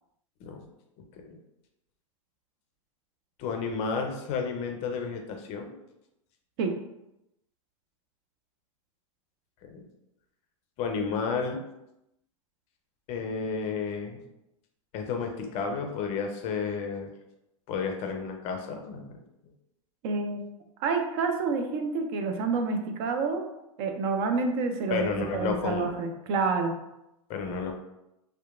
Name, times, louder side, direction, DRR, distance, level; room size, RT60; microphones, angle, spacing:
voice 1, 3.4-5.7 9.6-9.8 10.8-11.6 13.1-14.2 14.9-17.1 17.7-19.2 24.9-26.0 27.3-27.7, left 5 dB, 35° left, 3 dB, 0.4 m, -32 dB
voice 2, 20.0-20.5 20.8-23.5 23.8-26.7, right 4 dB, 45° right, 5 dB, 0.4 m, -28 dB
2.8 x 2.2 x 2.3 m, 0.88 s
hypercardioid pair, 115°, 18 cm